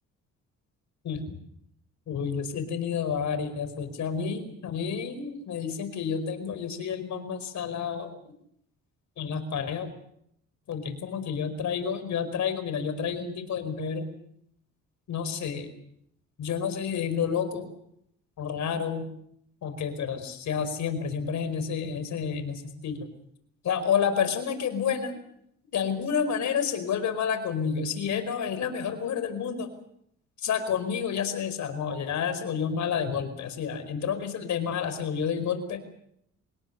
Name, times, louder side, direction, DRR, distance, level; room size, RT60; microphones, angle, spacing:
voice 1, 1.0-1.4 2.1-8.3 9.2-9.9 10.7-14.1 15.1-15.7 16.4-17.7 18.4-19.1 19.6-23.1 23.6-25.2 25.7-29.7 30.4-35.8, left 7 dB, 70° left, 10 dB, 4.9 m, -30 dB
26.5 x 20.5 x 6.9 m, 0.73 s
cardioid pair, 90°, 30 cm